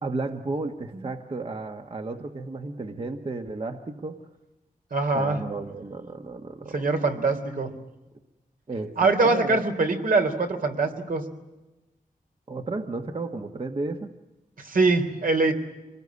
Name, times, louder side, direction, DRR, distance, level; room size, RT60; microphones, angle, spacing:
voice 1, 0.0-4.2 5.1-6.9 8.7-9.6 12.5-14.1, right 3 dB, 40° right, 5 dB, 1.4 m, -33 dB
voice 2, 4.9-5.4 6.7-7.7 9.0-11.2 14.6-15.5, right 3 dB, 70° right, 5 dB, 3.6 m, -23 dB
26.0 x 20.0 x 9.7 m, 1.0 s
wide cardioid pair, 120°, 15 cm